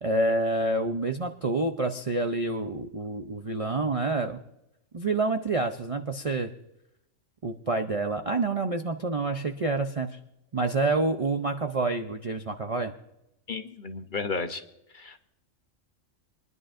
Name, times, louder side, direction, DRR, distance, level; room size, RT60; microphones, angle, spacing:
voice 1, 0.0-4.4 4.9-6.5 7.4-10.2 10.5-12.9, right 2 dB, 40° right, 5 dB, 0.5 m, -28 dB
voice 2, 13.5-14.6 14.9-15.3, left 4 dB, 45° left, 7 dB, 0.9 m, -33 dB
23.5 x 11.0 x 2.5 m, 0.85 s
omnidirectional pair, 1.3 m